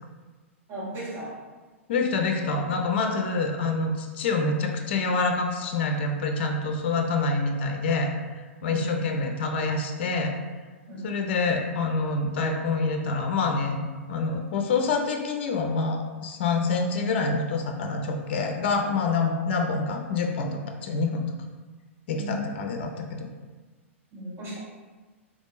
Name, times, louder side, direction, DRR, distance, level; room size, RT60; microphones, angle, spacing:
voice 1, 0.7-1.3 8.6-9.1 10.9-11.1 22.1-22.4 24.1-24.6, right 1 dB, 30° right, -6 dB, 1.4 m, -36 dB
voice 2, 1.9-8.1 8.6-10.3 11.0-21.3 22.1-23.3, left 3 dB, 55° left, 4 dB, 0.5 m, -26 dB
3.5 x 3.4 x 2.5 m, 1.3 s
figure-of-eight pair, 100°, 7 cm